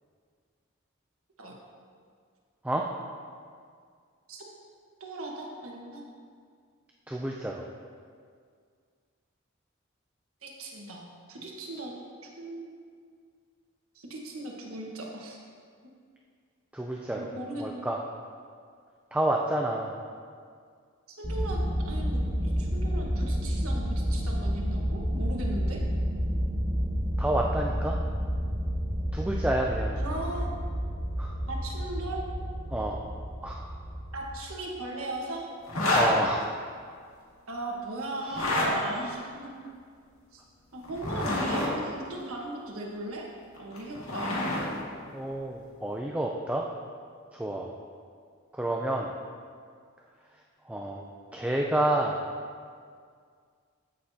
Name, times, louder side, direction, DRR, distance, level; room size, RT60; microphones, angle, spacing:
voice 1, 5.0-6.0 10.4-11.9 12.2-12.7 13.9-15.4 17.2-17.8 21.1-25.8 30.0-30.5 31.5-32.2 34.1-35.5 37.5-39.5 40.3-40.4 40.7-43.3 43.6-44.6, right 2 dB, 85° right, -1 dB, 1.4 m, -38 dB
voice 2, 7.1-7.7 16.7-17.3 17.6-18.0 19.1-20.0 27.2-28.0 29.1-30.0 31.2-31.4 32.7-33.0 33.4-33.7 35.9-36.4 45.1-46.7 47.3-47.7 48.5-49.1 50.7-51.0 51.3-52.2, right 1 dB, 5° right, -1 dB, 0.4 m, -29 dB
sound 1, 21.2-34.4, equal, 25° right, 1.9 m, -30 dB
sound 2, 35.7-36.1 38.2-38.7 40.8-41.7 43.6-44.7, left 1 dB, 80° left, 2.0 m, -27 dB
15.0 x 6.5 x 2.8 m, 2.1 s
head